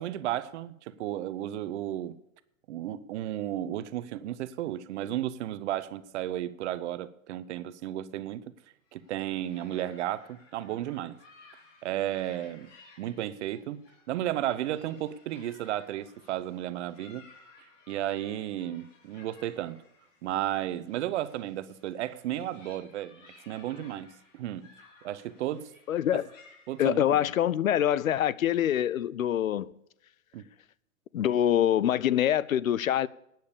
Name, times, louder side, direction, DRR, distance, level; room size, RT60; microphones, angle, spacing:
voice 1, 0.0-2.2 2.7-8.4 8.9-11.2 11.8-12.7 13.0-13.8 14.1-17.2 17.9-19.8 20.2-23.2 23.5-24.7 25.0-25.7 26.7-27.2 30.3-30.5, right 12 dB, 60° right, 0.9 m, -33 dB
sound 1, 8.9-26.9, left 4 dB, 65° left, 3.8 m, -58 dB
voice 2, 25.9-26.3 26.8-29.7 31.1-33.1, left 11 dB, 85° left, 0.6 m, -25 dB
11.5 x 9.4 x 6.8 m
hypercardioid pair, 105°, 40 cm